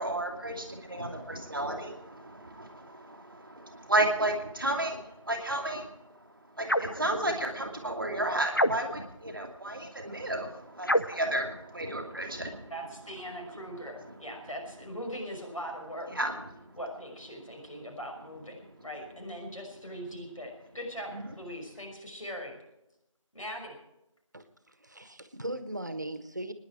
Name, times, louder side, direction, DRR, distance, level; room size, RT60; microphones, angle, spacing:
voice 1, 0.0-5.9 6.6-12.7 16.1-16.7, right 1 dB, ahead, -20 dB, 1.2 m, -32 dB
sound 1, 6.6-7.0 8.5-9.1 10.8-11.3, equal, 40° left, 0.5 m, -27 dB
voice 2, 12.7-16.1 16.8-22.6 23.3-23.8, equal, 75° left, 1 dB, 5.8 m, -40 dB
voice 3, 24.8-26.5, right 1 dB, 35° right, 10 dB, 1.2 m, -38 dB
24.5 x 10.5 x 4.7 m, 0.88 s
figure-of-eight pair, 175°, 17 cm